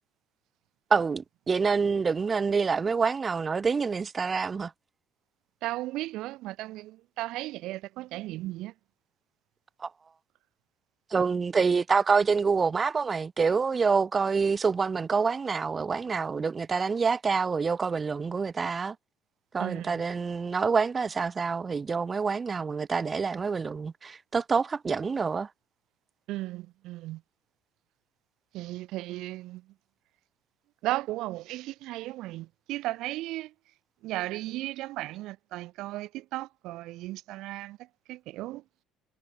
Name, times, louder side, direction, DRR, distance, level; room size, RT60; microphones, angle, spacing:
voice 1, 0.9-4.7 11.1-18.9 19.5-25.5, right 5 dB, 30° right, 1.6 m, -27 dB
voice 2, 5.6-8.7 19.6-20.0 26.3-27.2 28.5-29.6 30.8-33.5 34.0-37.8 38.1-38.6, right 17 dB, 75° right, 2.6 m, -35 dB
supercardioid pair, 100°, 0 cm